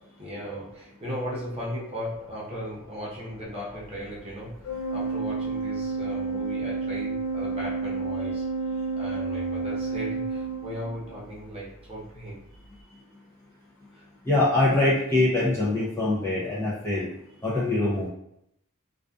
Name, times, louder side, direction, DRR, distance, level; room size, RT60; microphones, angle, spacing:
voice 1, 0.0-12.4 12.8-12.9 13.9-14.1, equal, 25° right, -6 dB, 0.8 m, -37 dB
Organ, 4.6-11.2, right 4 dB, 85° left, 0.5 m, -30 dB
voice 2, 14.2-17.1 17.4-18.1, left 2 dB, 10° left, -8 dB, 0.5 m, -23 dB
2.5 x 2.3 x 2.3 m, 0.77 s
head